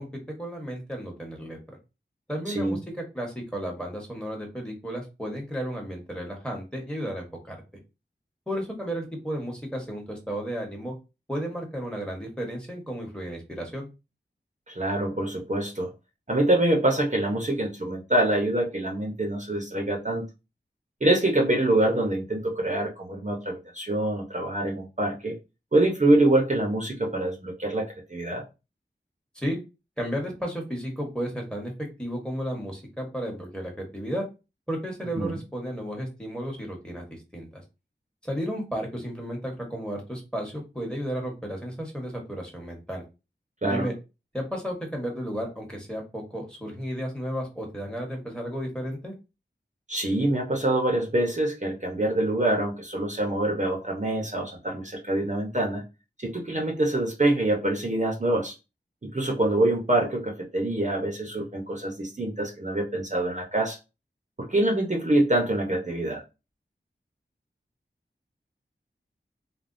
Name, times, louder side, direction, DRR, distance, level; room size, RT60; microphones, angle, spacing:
voice 1, 0.0-1.6 2.3-7.6 8.5-10.9 11.3-13.9 29.3-29.6 30.0-34.2 34.7-37.6 38.2-43.0 43.7-43.9 44.3-49.1, equal, 5° left, 1.1 m, -33 dB
voice 2, 2.5-2.8 14.7-15.9 16.3-20.2 21.0-25.3 25.7-28.4 35.2-35.4 43.6-43.9 49.9-55.8 56.2-58.5 59.0-63.8 64.4-66.2, right 1 dB, 40° right, 0.8 m, -25 dB
3.4 x 2.2 x 2.6 m
wide cardioid pair, 50°, 20 cm